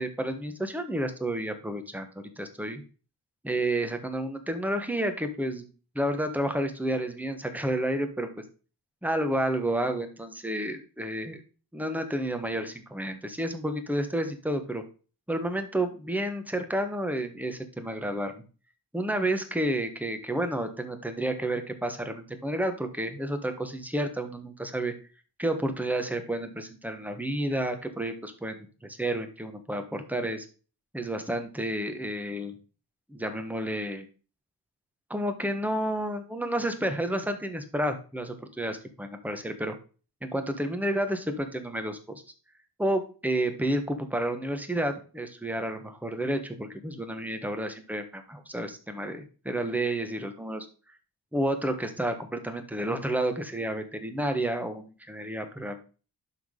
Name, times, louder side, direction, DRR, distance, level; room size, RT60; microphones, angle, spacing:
voice 1, 0.0-2.8 3.4-5.6 5.9-8.3 9.0-11.4 11.7-14.8 15.3-18.4 18.9-24.9 25.4-28.5 28.8-30.5 30.9-32.6 33.1-34.1 35.1-39.7 40.2-42.2 42.8-50.7 51.3-55.8, right 1 dB, 5° right, 7 dB, 1.3 m, -30 dB
11.5 x 3.9 x 3.8 m, 0.36 s
cardioid pair, 85°, 38 cm